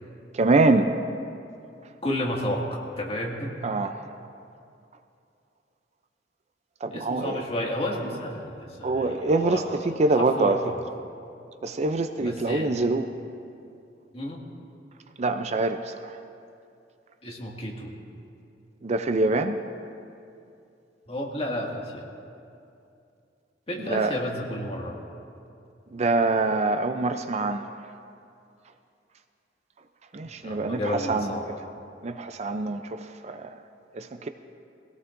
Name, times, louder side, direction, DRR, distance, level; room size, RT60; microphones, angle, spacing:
voice 1, 0.3-0.9 3.6-3.9 6.8-7.4 8.8-9.6 10.0-10.6 11.6-13.1 15.2-15.8 18.8-19.5 23.9-24.1 25.9-27.7 30.1-31.3 32.0-33.5 34.0-34.3, right 3 dB, 40° right, 8 dB, 0.4 m, -24 dB
voice 2, 2.0-3.5 6.9-10.8 12.2-12.8 14.1-14.4 17.2-17.9 21.1-22.0 23.7-25.0 30.2-31.6, left 1 dB, 35° left, -2 dB, 2.0 m, -32 dB
21.5 x 17.0 x 2.6 m, 2.6 s
head